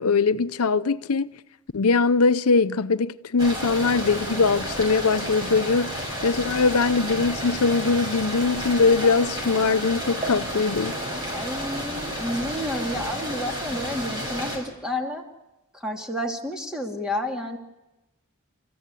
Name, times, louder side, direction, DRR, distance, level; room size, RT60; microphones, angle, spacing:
voice 1, 0.0-1.3 1.7-11.0, left 4 dB, 85° left, 0.7 m, -22 dB
sound 1, 3.4-14.6, equal, 20° right, 7.6 m, -31 dB
voice 2, 11.3-15.2 15.7-17.6, left 1 dB, 5° right, 2.5 m, -30 dB
30.0 x 15.0 x 8.4 m
head